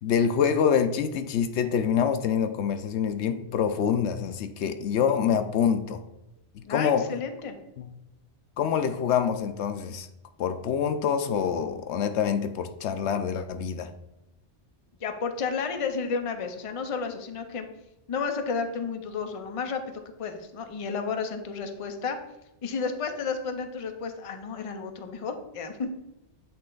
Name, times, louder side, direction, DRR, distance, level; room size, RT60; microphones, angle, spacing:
voice 1, 0.0-6.0 6.5-7.1 7.8-7.9 8.6-10.1 10.4-13.9, left 7 dB, 80° left, 0.9 m, -26 dB
voice 2, 6.6-7.6 15.0-17.7 18.1-22.2 22.6-25.9, left 5 dB, 40° left, 0.6 m, -32 dB
8.4 x 3.3 x 3.8 m
omnidirectional pair, 1.2 m